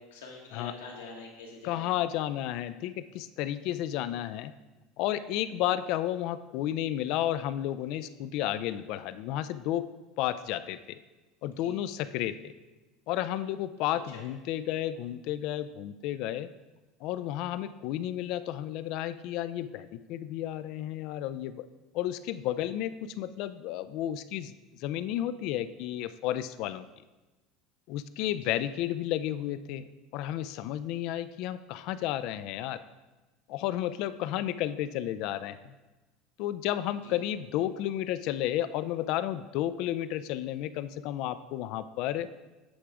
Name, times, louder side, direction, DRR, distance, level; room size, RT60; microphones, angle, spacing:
voice 1, 0.0-1.9 11.5-11.7 14.1-14.2 28.4-28.5 37.0-37.1, left 4 dB, 85° left, -1 dB, 1.5 m, -45 dB
voice 2, 1.6-4.5 5.0-9.9 10.2-11.0 11.4-12.5 13.1-16.5 17.0-21.7 21.9-24.5 24.8-26.9 27.9-32.8 33.5-35.7 36.4-42.3, left 12 dB, 60° left, 14 dB, 0.4 m, -32 dB
8.8 x 3.5 x 4.9 m, 1.1 s
hypercardioid pair, 90°, 0 cm